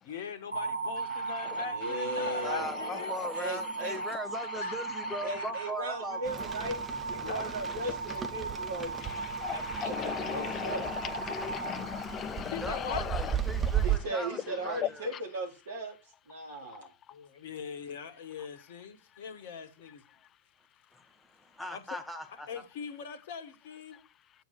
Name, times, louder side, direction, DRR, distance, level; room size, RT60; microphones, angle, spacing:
voice 1, 0.0-3.1 4.6-4.8 7.2-7.5 12.5-13.0 17.1-20.0 21.7-21.8 22.5-24.0, left 6 dB, 55° left, 1.6 m, -41 dB
sound 1, 0.5-12.7, right 4 dB, 90° right, 1.2 m, -37 dB
voice 2, 1.7-2.7 3.3-4.0 5.2-10.9 13.8-15.9 16.3-16.9, right 1 dB, 65° right, 3.5 m, -37 dB
voice 3, 2.4-6.4 12.6-15.2 20.9-22.6, equal, 5° left, 1.5 m, -39 dB
Rain, 6.2-14.0, right 9 dB, 20° right, 1.0 m, -36 dB
voice 4, 9.4-10.9 11.3-12.6, left 9 dB, 30° left, 0.4 m, -37 dB
9.2 x 4.7 x 6.0 m
figure-of-eight pair, 90°, 0 cm